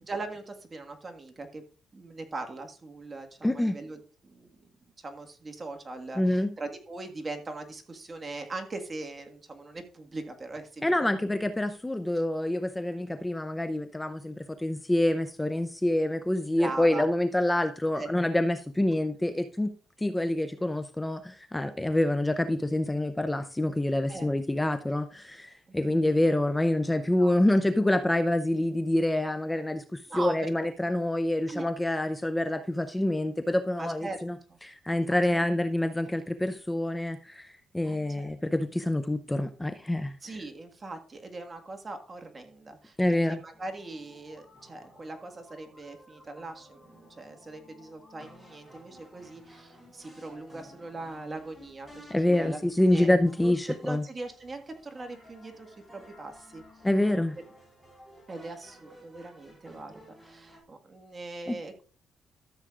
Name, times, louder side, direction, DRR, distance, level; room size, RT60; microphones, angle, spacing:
voice 1, 0.0-1.6 1.9-4.6 5.0-11.3 16.6-17.1 17.9-18.1 24.1-24.3 25.7-25.8 27.2-27.3 30.1-30.5 31.5-31.7 33.8-34.2 34.5-34.6 35.0-35.5 37.8-38.3 40.2-52.6 52.9-53.1 53.4-56.6 58.3-61.8, right 2 dB, 30° right, 5 dB, 1.7 m, -40 dB
voice 2, 3.4-3.8 6.2-6.5 10.8-19.7 20.0-34.4 34.6-40.1 43.0-43.4 52.1-54.0 56.8-57.3 61.5-61.6, left 1 dB, 10° left, 9 dB, 0.6 m, -27 dB
sound 1, 43.5-60.6, equal, 5° right, 4.4 m, -54 dB
13.5 x 7.3 x 2.5 m, 0.40 s
cardioid pair, 90°, 0 cm